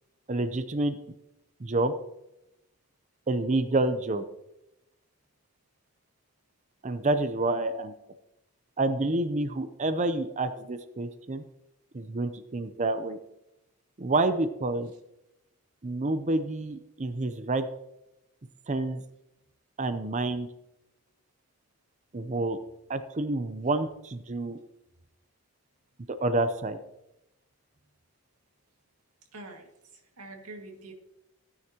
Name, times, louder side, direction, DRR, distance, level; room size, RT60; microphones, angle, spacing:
voice 1, 0.3-1.0 1.6-1.9 3.3-4.2 6.8-7.9 8.8-11.4 11.9-13.2 14.0-14.9 15.8-17.7 18.7-19.0 19.8-20.5 22.1-22.6 22.9-24.6 26.2-26.8, right 2 dB, 35° right, 10 dB, 0.6 m, -28 dB
voice 2, 29.3-30.9, right 2 dB, 90° right, 3 dB, 2.0 m, -45 dB
15.5 x 9.6 x 2.9 m, 0.88 s
head